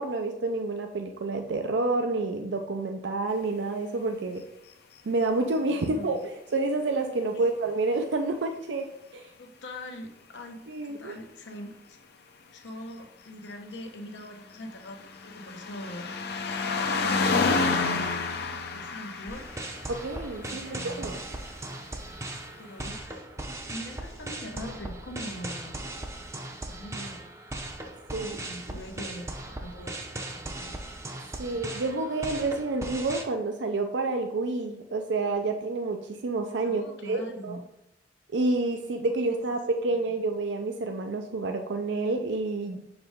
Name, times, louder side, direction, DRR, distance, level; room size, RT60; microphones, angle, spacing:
voice 1, 0.0-4.4 5.1-6.2 6.5-8.9 9.1-9.3 10.7-11.1 19.9-21.2 28.1-28.4 31.4-37.6 38.3-42.8, right 3 dB, 75° right, 5 dB, 0.5 m, -29 dB
voice 2, 5.6-6.2 7.3-7.5 9.4-12.0 12.5-16.1 16.8-18.3 18.7-19.5 20.4-21.2 22.6-23.3 23.7-25.8 26.7-27.3 28.2-30.8 36.6-37.6, equal, 85° left, 4 dB, 1.0 m, -42 dB
sound 1, 14.4-21.1 22.1-22.2, left 4 dB, 60° left, 0.6 m, -29 dB
sound 2, 19.3-33.2, right 1 dB, 15° right, 0.6 m, -38 dB
6.4 x 4.7 x 3.6 m, 0.86 s
head